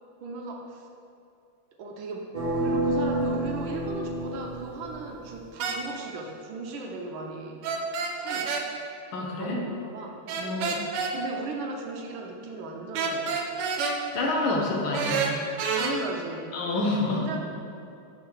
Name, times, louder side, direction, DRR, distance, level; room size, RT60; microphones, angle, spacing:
voice 1, 0.2-0.9 1.8-2.3 2.6-7.6 8.2-8.7 9.3-13.4 15.8-16.5 17.1-17.4, right 3 dB, 75° right, 1 dB, 1.4 m, -37 dB
sound 1, 2.3-5.4, right 1 dB, 20° right, 1.0 m, -29 dB
sound 2, 5.6-5.8 7.6-8.6 10.3-11.1 12.9-14.0 14.9-15.9, right 5 dB, 90° right, 1.6 m, -28 dB
voice 2, 9.1-9.6 10.4-10.6 14.1-15.2 16.5-17.3, left 2 dB, 70° left, -1 dB, 1.7 m, -27 dB
5.7 x 4.7 x 4.7 m, 2.7 s
omnidirectional pair, 2.4 m